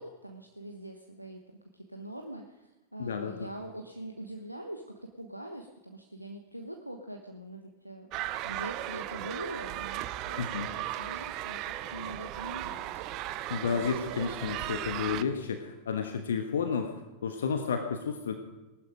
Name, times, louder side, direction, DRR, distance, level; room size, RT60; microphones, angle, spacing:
voice 1, 0.0-8.1 8.4-13.0, right 1 dB, 90° right, 4 dB, 1.0 m, -43 dB
voice 2, 3.0-3.5 10.4-10.7 13.5-16.9 17.2-18.3, left 6 dB, 65° left, 6 dB, 1.2 m, -31 dB
sound 1, 8.1-15.2, right 14 dB, 40° right, 0.7 m, -36 dB
19.5 x 12.0 x 5.1 m, 1.1 s
figure-of-eight pair, 90°, 0 cm